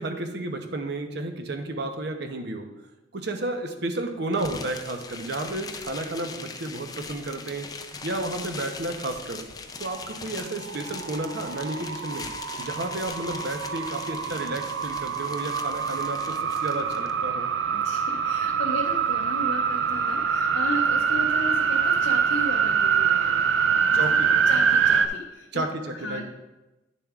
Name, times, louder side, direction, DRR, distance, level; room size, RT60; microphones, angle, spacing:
voice 1, 0.0-2.7 3.1-7.7 8.0-9.5 9.8-12.3 12.6-17.5 23.9-24.3 25.5-26.3, right 2 dB, 65° right, 5 dB, 0.8 m, -32 dB
sound 1, 4.3-17.1, left 4 dB, 20° left, 0.4 m, -40 dB
sound 2, 10.6-25.1, right 6 dB, 90° right, 0.5 m, -25 dB
voice 2, 17.7-23.4 23.9-24.0 24.5-25.6 25.9-26.3, left 2 dB, 75° left, 1 dB, 0.6 m, -35 dB
10.0 x 6.9 x 2.4 m, 1.1 s
head